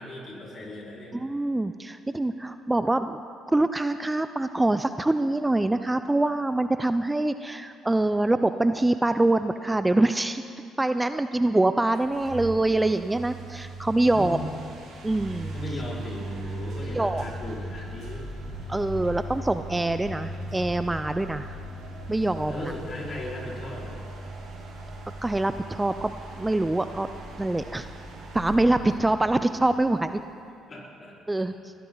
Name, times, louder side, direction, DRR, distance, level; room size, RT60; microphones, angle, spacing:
voice 1, 0.0-1.2 14.1-14.5 15.5-18.3 22.5-24.0 30.7-31.1, left 1 dB, 45° left, -4 dB, 5.1 m, -37 dB
voice 2, 1.1-3.2 3.5-10.4 10.8-14.4 15.0-15.5 16.9-17.2 18.7-21.6 22.1-22.7 25.2-27.1 27.4-27.9 28.3-30.2 31.3-31.7, right 2 dB, 15° right, 10 dB, 0.6 m, -25 dB
sound 1, 11.9-30.4, right 1 dB, 70° right, 4.4 m, -38 dB
21.5 x 16.0 x 4.0 m, 2.5 s
hypercardioid pair, 60°, 0 cm